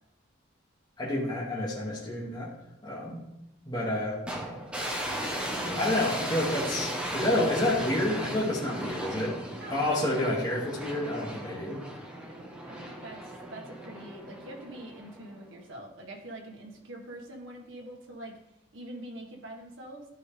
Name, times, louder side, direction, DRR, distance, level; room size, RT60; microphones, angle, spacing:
voice 1, 1.0-2.5 2.8-3.2 3.7-4.2 5.8-9.4 9.7-11.8, left 1 dB, 20° left, -6 dB, 2.0 m, -29 dB
sound 1, 4.3-15.5, right 1 dB, 5° right, 1.0 m, -36 dB
voice 2, 9.6-9.9 12.2-18.4 18.7-20.1, right 1 dB, 75° right, 1 dB, 1.6 m, -44 dB
13.0 x 5.0 x 3.4 m, 0.87 s
head